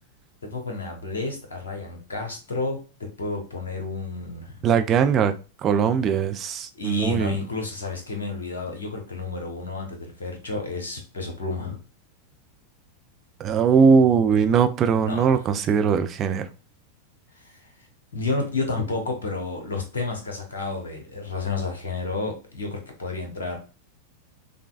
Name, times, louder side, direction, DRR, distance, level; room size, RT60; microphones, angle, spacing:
voice 1, 0.4-2.8 3.2-4.6 6.8-11.8 15.0-15.4 17.4-17.6 18.1-23.6, left 3 dB, 70° left, 1.0 m, -31 dB
voice 2, 4.6-5.3 5.6-7.4 13.4-16.5, right 6 dB, 30° right, 0.4 m, -20 dB
5.2 x 2.2 x 2.4 m
figure-of-eight pair, 90°, 0 cm